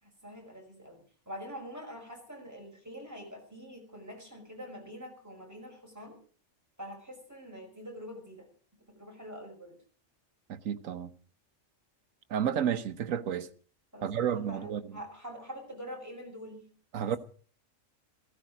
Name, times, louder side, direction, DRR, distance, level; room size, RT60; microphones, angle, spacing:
voice 1, 0.0-6.2 6.8-8.5 8.7-9.8 13.9-16.7 16.9-17.2, equal, 15° right, 5.6 m, -45 dB
voice 2, 10.5-11.1 12.3-13.5 14.0-15.0 16.9-17.2, right 9 dB, 85° right, 1.3 m, -31 dB
15.5 x 15.0 x 5.0 m
omnidirectional pair, 1.3 m